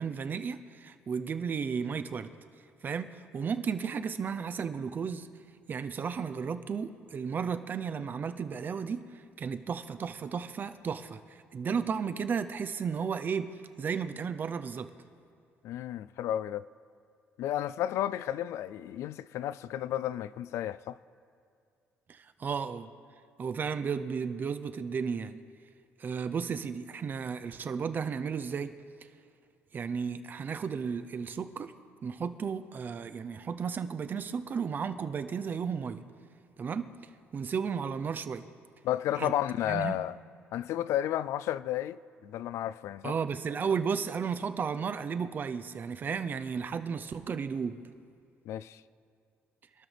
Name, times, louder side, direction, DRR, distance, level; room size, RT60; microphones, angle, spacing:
voice 1, 0.0-2.3 2.8-5.3 5.7-13.5 13.8-14.9 22.1-22.9 23.4-25.4 26.0-28.8 29.7-31.7 32.0-36.0 36.6-36.9 37.3-38.4 39.2-39.3 39.7-40.0 43.0-47.8, right 6 dB, 40° right, 0.7 m, -34 dB
voice 2, 15.6-16.7 17.4-21.0 38.8-40.1 40.5-43.1 48.5-48.8, left 12 dB, 80° left, 0.4 m, -32 dB
25.5 x 12.5 x 3.4 m
cardioid pair, 105°, 5 cm